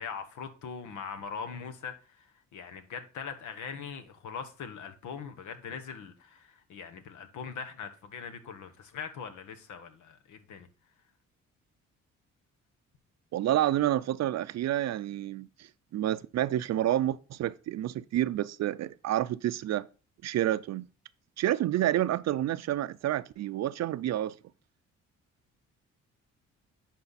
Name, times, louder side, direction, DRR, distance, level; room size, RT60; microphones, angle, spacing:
voice 1, 0.0-10.7, left 6 dB, 75° left, 1.3 m, -41 dB
voice 2, 13.3-19.9 20.2-20.9 21.4-24.4, right 13 dB, 60° right, 0.5 m, -29 dB
10.5 x 4.5 x 4.1 m
cardioid pair, 90°, 30 cm